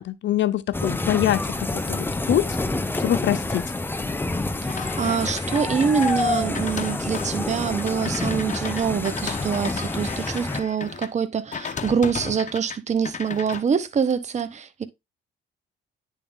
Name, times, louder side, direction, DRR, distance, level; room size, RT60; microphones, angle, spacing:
voice 1, 0.0-2.6 2.9-3.6, left 12 dB, 70° left, 0.7 m, -24 dB
sound 1, 0.7-10.6, left 2 dB, 10° left, 0.6 m, -28 dB
voice 2, 4.6-14.8, right 6 dB, 35° right, 0.8 m, -25 dB
sound 2, 4.7-11.1 11.5-12.8 13.0-13.6, left 6 dB, 40° left, 0.9 m, -35 dB
9.8 x 3.6 x 3.6 m
cardioid pair, 90°, 20 cm